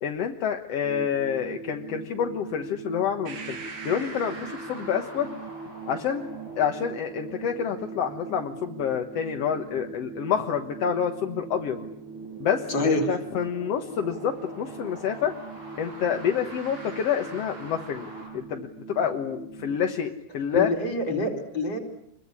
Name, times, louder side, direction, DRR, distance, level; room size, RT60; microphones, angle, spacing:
voice 1, 0.0-3.6 3.8-5.3 5.9-6.3 6.6-11.8 12.4-15.3 15.8-18.1 18.3-20.7, left 8 dB, 55° left, 4 dB, 1.9 m, -28 dB
sound 1, 0.8-19.8, right 5 dB, 60° right, 4.0 m, -41 dB
sound 2, 3.3-18.3, right 2 dB, 80° right, 8.9 m, -45 dB
voice 2, 12.7-13.1 20.5-21.8, left 2 dB, 30° left, 5 dB, 4.4 m, -26 dB
27.0 x 22.0 x 9.7 m, 0.75 s
omnidirectional pair, 4.2 m